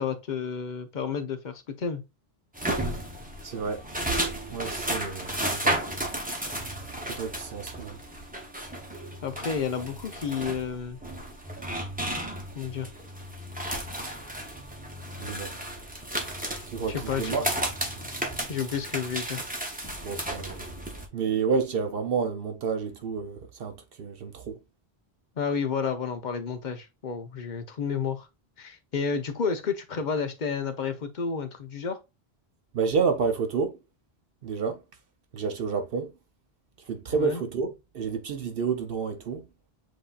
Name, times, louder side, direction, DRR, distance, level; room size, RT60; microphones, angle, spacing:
voice 1, 0.0-2.0 9.2-11.0 12.5-12.9 16.9-17.4 18.5-19.5 25.4-28.3 28.6-32.0 37.1-37.4, left 6 dB, 50° left, 0.9 m, -31 dB
sound 1, 2.5-21.1, right 1 dB, 10° right, 0.8 m, -33 dB
voice 2, 3.4-3.8 4.5-5.8 7.1-8.0 15.2-15.5 16.7-17.5 20.0-20.6 21.1-24.6 32.7-33.8 34.4-34.8 35.3-36.1 36.9-39.4, right 5 dB, 65° right, 0.8 m, -29 dB
7.8 x 2.7 x 2.4 m
omnidirectional pair, 1.1 m